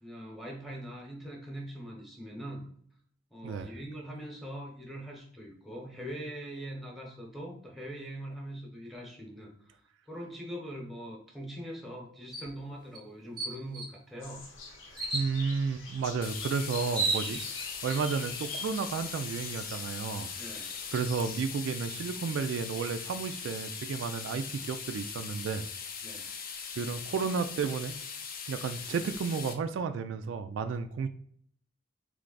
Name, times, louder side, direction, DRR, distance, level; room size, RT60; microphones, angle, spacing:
voice 1, 0.0-2.7 3.3-9.8 10.1-14.4 17.3-17.5 20.3-20.6 26.0-26.2, equal, ahead, -1 dB, 0.9 m, -42 dB
sound 1, 12.3-12.5 12.9-13.0 13.4-14.0 15.0-15.3 16.4-16.5 16.8-17.7, right 3 dB, 25° right, 0.6 m, -32 dB
sound 2, 14.2-21.4, left 4 dB, 75° left, 0.9 m, -45 dB
voice 2, 15.1-20.3 20.9-25.7 26.8-28.0 28.5-31.1, right 5 dB, 70° right, 8 dB, 0.3 m, -32 dB
sound 3, 16.2-29.5, left 6 dB, 50° left, 0.5 m, -40 dB
3.3 x 3.3 x 3.9 m, 0.64 s
head